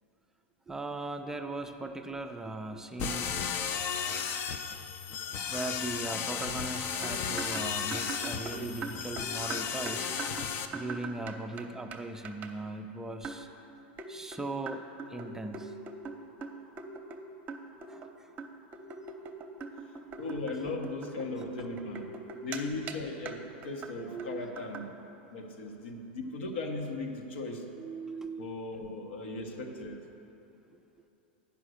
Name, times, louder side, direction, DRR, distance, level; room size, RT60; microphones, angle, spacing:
voice 1, 0.7-3.4 5.5-10.1 10.7-13.5 14.1-14.8 15.1-15.8 17.9-18.3 20.0-20.3 23.9-24.5 24.8-24.9 27.8-28.7, right 2 dB, 10° right, 5 dB, 0.4 m, -39 dB
sound 1, 3.0-10.7, left 7 dB, 40° left, 0.5 m, -34 dB
sound 2, 7.0-11.6 11.9-12.0 12.2-12.5 13.2-13.5 14.0-17.2 17.5-18.1 18.4-22.6 22.9-23.0 23.3-23.4 23.6-23.9 24.2-24.3 24.6-24.8, right 4 dB, 30° right, 0.8 m, -41 dB
voice 2, 20.2-22.1 22.4-24.9 25.3-27.7 28.4-30.0, left 2 dB, 80° left, 2 dB, 1.2 m, -37 dB
9.0 x 5.5 x 6.4 m, 3.0 s
supercardioid pair, 120°, 6 cm